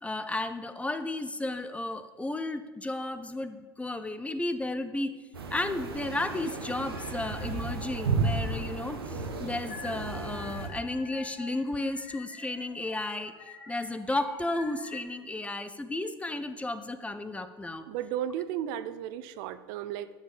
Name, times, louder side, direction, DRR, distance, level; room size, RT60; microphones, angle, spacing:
voice 1, 0.0-5.1 5.5-13.3 13.7-17.9, left 2 dB, 10° left, 11 dB, 0.7 m, -33 dB
sound 1, 5.3-10.7, right 4 dB, 90° right, 1.4 m, -33 dB
sound 2, 5.6-6.5 6.8-8.8 9.1-15.0, left 3 dB, 75° left, 2.1 m, -48 dB
voice 2, 17.9-20.1, right 10 dB, 60° right, 13 dB, 0.6 m, -34 dB
11.0 x 5.4 x 7.2 m, 1.4 s
hypercardioid pair, 80°, 12 cm